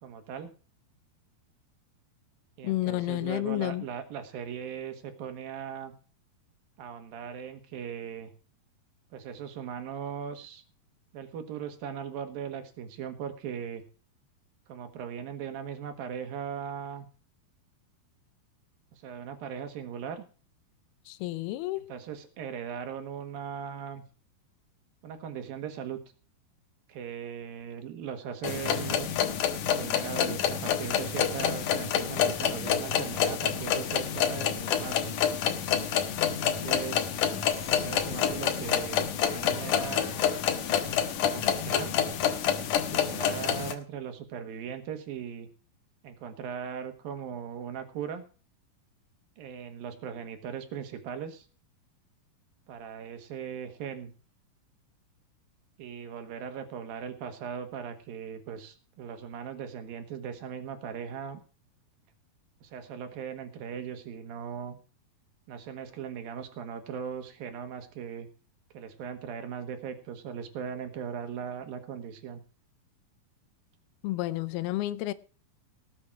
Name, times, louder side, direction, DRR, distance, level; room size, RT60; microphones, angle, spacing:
voice 1, 0.0-0.5 2.6-5.9 6.8-8.3 9.1-10.6 11.1-13.8 14.7-17.1 18.9-20.2 21.9-24.0 25.0-26.0 26.9-29.1 29.7-35.1 36.2-37.2 37.7-40.1 41.2-42.0 42.9-45.5 46.0-48.2 49.4-51.5 52.7-54.1 55.8-61.4 62.6-64.8 65.5-68.3 68.7-72.4, right 8 dB, 70° right, 3.3 m, -39 dB
voice 2, 2.6-3.9 21.1-21.9 74.0-75.1, left 16 dB, 85° left, 2.7 m, -31 dB
sound 1, 28.4-43.7, left 9 dB, 65° left, 2.5 m, -28 dB
sound 2, 37.2-42.2, left 2 dB, 45° left, 4.2 m, -47 dB
18.5 x 7.8 x 4.7 m
omnidirectional pair, 4.4 m